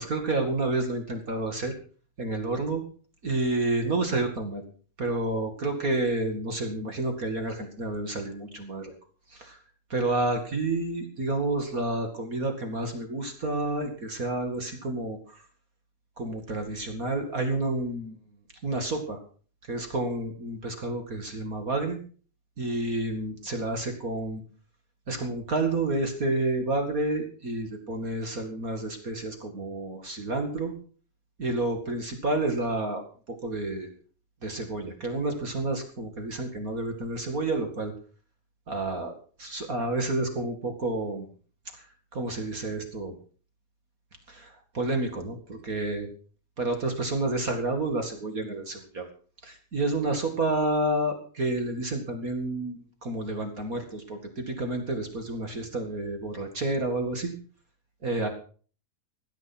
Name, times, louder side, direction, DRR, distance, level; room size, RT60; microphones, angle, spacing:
voice 1, 0.0-1.7 2.2-2.8 3.2-4.6 5.0-8.9 9.3-9.6 9.9-15.4 16.2-18.2 18.6-19.2 19.6-22.0 22.6-24.4 25.1-30.7 31.4-33.0 33.3-33.9 34.4-37.9 38.7-41.3 41.7-41.9 42.1-43.2 44.3-46.1 46.6-49.1 49.4-57.3 58.0-58.3, right 2 dB, 35° right, 6 dB, 1.6 m, -30 dB
16.5 x 11.0 x 6.1 m, 0.41 s
omnidirectional pair, 4.6 m